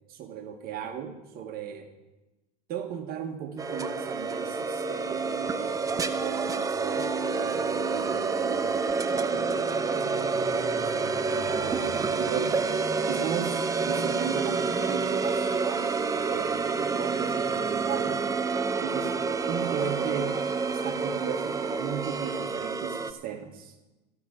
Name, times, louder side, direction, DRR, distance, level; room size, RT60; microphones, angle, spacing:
voice 1, 0.1-1.9 2.7-8.7 9.0-12.6 13.1-18.2 18.8-19.2 19.5-23.7, right 8 dB, 45° right, 6 dB, 1.4 m, -37 dB
sound 1, 3.6-23.1, right 4 dB, 15° right, 0.7 m, -28 dB
Wind, 17.9-22.5, right 9 dB, 75° right, 1.0 m, -45 dB
14.0 x 5.9 x 8.6 m, 1.0 s
hypercardioid pair, 95°, 21 cm